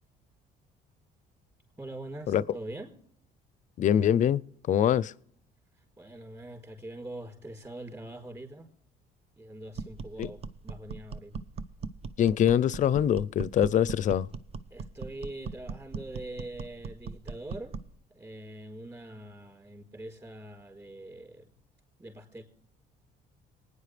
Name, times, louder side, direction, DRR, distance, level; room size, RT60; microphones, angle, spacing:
voice 1, 1.8-2.9 5.7-8.7 9.4-11.4 14.7-17.8 18.1-21.5 22.0-22.4, right 1 dB, 20° right, 4.3 m, -43 dB
voice 2, 3.8-4.4 4.7-5.1 10.2-10.3 12.2-14.3, left 9 dB, 45° left, 0.5 m, -24 dB
sound 1, 9.7-18.0, right 5 dB, 35° right, 0.7 m, -40 dB
26.5 x 9.7 x 3.3 m
cardioid pair, 110°, 17 cm